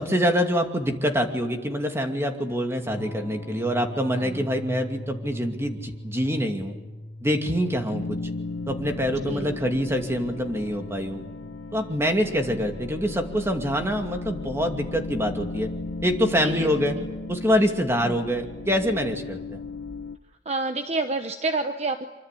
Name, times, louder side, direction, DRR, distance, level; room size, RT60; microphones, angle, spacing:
voice 1, 0.0-6.7 7.2-8.2 8.7-11.2 11.7-15.7 16.0-16.9 17.3-19.6, equal, 15° right, 4 dB, 2.5 m, -25 dB
Electric guitar / Strum, 2.9-12.6, left 1 dB, 15° left, 5.9 m, -41 dB
voice 2, 4.1-4.5 9.1-9.6 12.5-12.6 16.4-17.1 18.0-18.1 20.5-22.1, right 3 dB, 35° right, 7 dB, 1.0 m, -29 dB
sound 1, 7.9-20.2, left 2 dB, 75° left, 1.0 m, -36 dB
26.0 x 25.0 x 8.5 m, 1.1 s
head